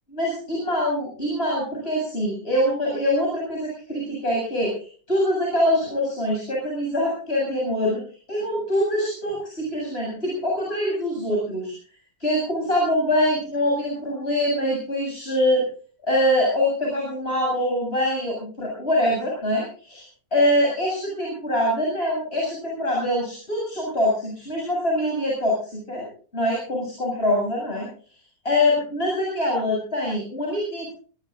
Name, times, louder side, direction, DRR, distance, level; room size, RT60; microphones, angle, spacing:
voice 1, 0.1-8.0 8.3-11.7 12.2-15.6 16.1-20.1 20.3-26.1 26.3-27.9 28.4-30.9, left 1 dB, 45° left, -3 dB, 7.9 m, -24 dB
24.5 x 19.0 x 2.5 m, 0.41 s
omnidirectional pair, 1.5 m